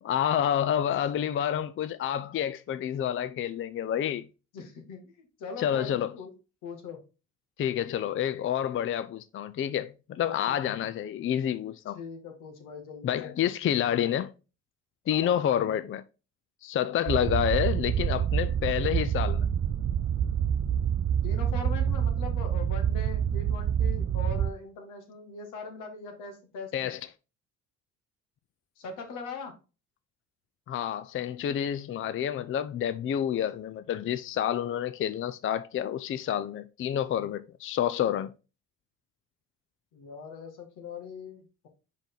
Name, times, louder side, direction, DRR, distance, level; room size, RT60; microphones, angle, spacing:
voice 1, 0.0-4.3 5.6-6.1 7.6-12.0 13.0-14.3 15.1-16.0 16.6-19.5 26.7-27.0 30.7-38.3, left 10 dB, 45° left, 0.5 m, -29 dB
voice 2, 4.5-6.3 6.6-7.0 10.2-10.6 11.9-13.5 15.1-15.4 21.2-26.9 28.8-29.5 39.9-41.7, left 5 dB, 80° left, 1.9 m, -41 dB
sound 1, 17.1-24.5, right 9 dB, 40° right, 0.4 m, -27 dB
5.2 x 5.0 x 3.8 m
cardioid pair, 90°, 31 cm